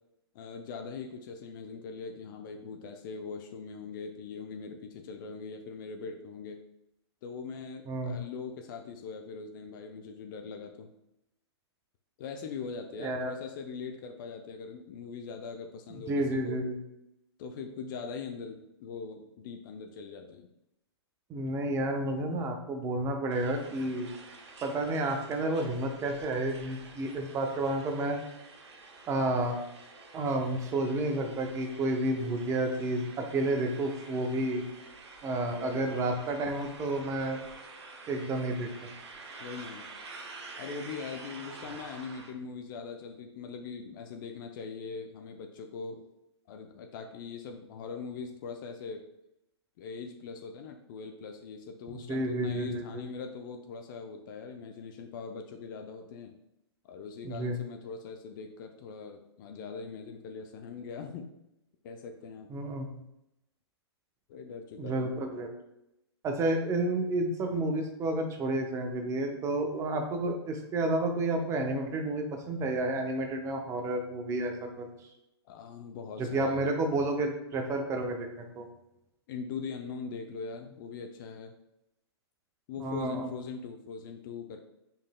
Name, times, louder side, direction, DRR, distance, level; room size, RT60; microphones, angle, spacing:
voice 1, 0.3-6.6 7.2-10.9 12.2-16.6 17.4-20.5 35.6-36.0 39.4-39.9 40.6-46.0 46.5-49.0 49.8-56.3 56.8-61.3 61.8-62.5 64.3-65.1 75.4-76.6 79.3-81.5 82.7-84.6, left 5 dB, 45° left, 4 dB, 0.5 m, -41 dB
voice 2, 7.9-8.2 13.0-13.3 16.1-16.8 21.3-24.1 24.6-28.2 29.1-29.6 30.1-34.6 35.2-37.4 38.1-38.7 51.9-53.0 57.2-57.6 62.5-63.0 64.8-65.5 66.2-74.9 76.2-78.7 82.8-83.3, right 2 dB, 20° right, 4 dB, 0.6 m, -31 dB
sound 1, 23.3-42.3, right 3 dB, 75° right, 0.8 m, -49 dB
5.4 x 3.2 x 2.2 m, 0.85 s
hypercardioid pair, 125°, 14 cm